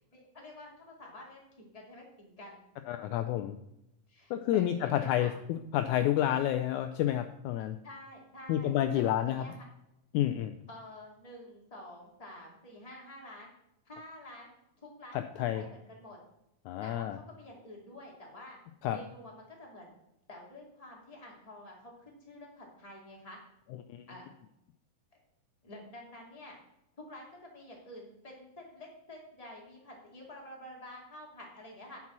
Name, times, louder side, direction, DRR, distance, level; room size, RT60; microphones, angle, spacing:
voice 1, 0.1-2.6 4.1-5.3 7.8-9.6 10.7-13.5 13.9-15.2 15.5-16.2 16.8-18.6 18.9-19.9 20.3-23.4 24.1-24.3 25.6-26.6 27.0-32.0, left 1 dB, 10° left, -2 dB, 2.1 m, -49 dB
voice 2, 2.9-3.6 4.3-7.8 8.5-9.5 10.1-10.5 15.1-15.6 16.7-17.2 18.8-19.0 23.9-24.1, left 12 dB, 80° left, 8 dB, 1.8 m, -30 dB
9.6 x 6.0 x 6.0 m, 0.85 s
omnidirectional pair, 3.7 m